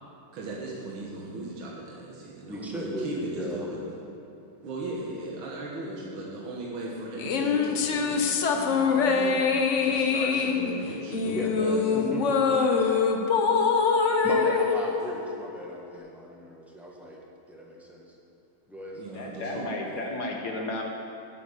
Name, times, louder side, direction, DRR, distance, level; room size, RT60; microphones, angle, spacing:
voice 1, 0.3-3.8 4.6-9.4 9.8-11.8 18.9-19.7, right 2 dB, 70° right, -4 dB, 2.1 m, -37 dB
voice 2, 2.5-3.8 11.2-11.5 11.9-13.0 14.2-17.2 17.5-18.1 18.7-19.6, equal, ahead, -3 dB, 1.2 m, -36 dB
sound 1, 7.2-15.8, left 5 dB, 75° left, 0.6 m, -24 dB
voice 3, 19.1-20.8, left 2 dB, 55° left, 0 dB, 1.4 m, -33 dB
9.0 x 7.7 x 8.1 m, 2.7 s
omnidirectional pair, 2.3 m